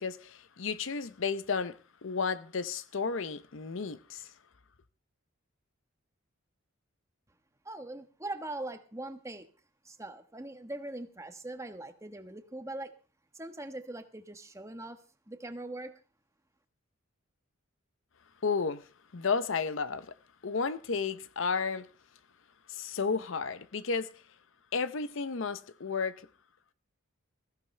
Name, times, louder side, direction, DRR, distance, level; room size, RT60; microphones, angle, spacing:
voice 1, 0.0-4.3 18.4-18.9 19.1-20.1 20.4-21.9 22.7-24.1 24.7-26.2, left 5 dB, 60° left, 0.7 m, -32 dB
voice 2, 7.6-9.5 9.8-12.9 13.3-16.0, right 2 dB, 15° right, 1.2 m, -41 dB
21.0 x 15.5 x 3.3 m
head